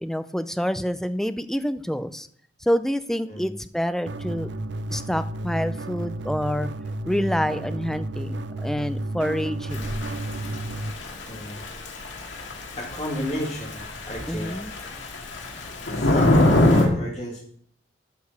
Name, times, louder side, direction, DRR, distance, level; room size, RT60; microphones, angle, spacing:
voice 1, 0.0-2.3 2.6-4.5 4.9-6.7 7.0-9.9 14.3-14.7, equal, ahead, 11 dB, 0.4 m, -27 dB
voice 2, 3.3-3.6 11.3-11.6 12.8-14.6 15.9-17.4, equal, 35° left, -3 dB, 2.1 m, -33 dB
sound 1, 4.1-10.9, right 1 dB, 65° right, 0.6 m, -32 dB
Thunder / Rain, 9.7-16.9, left 1 dB, 80° left, 2.0 m, -25 dB
11.5 x 5.1 x 6.6 m, 0.63 s
head